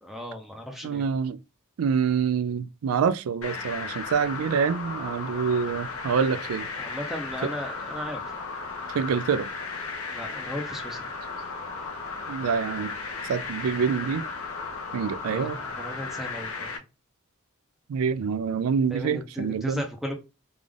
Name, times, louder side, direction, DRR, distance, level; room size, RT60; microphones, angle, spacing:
voice 1, 0.0-1.0 6.3-6.4 6.8-8.2 10.1-11.0 15.2-16.7 18.9-20.1, equal, ahead, 0.6 m, -36 dB
voice 2, 0.8-1.4 1.8-6.7 7.4-7.5 8.9-9.5 12.3-12.9 13.2-14.2 14.9-15.6 17.9-19.8, right 6 dB, 80° right, 0.3 m, -26 dB
sound 1, 3.4-16.8, left 4 dB, 75° left, 0.7 m, -35 dB
3.4 x 2.4 x 3.6 m
head